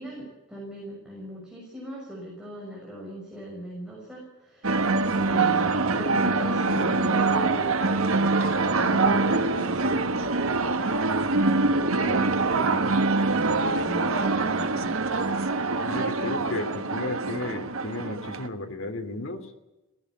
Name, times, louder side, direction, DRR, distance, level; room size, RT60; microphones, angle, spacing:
voice 1, 0.0-12.8 13.3-15.0, equal, 5° right, -5 dB, 6.7 m, -38 dB
sound 1, 4.6-18.5, right 3 dB, 90° right, 1.3 m, -24 dB
voice 2, 15.8-19.5, left 2 dB, 70° left, 5 dB, 2.8 m, -34 dB
18.0 x 15.5 x 9.9 m, 1.0 s
head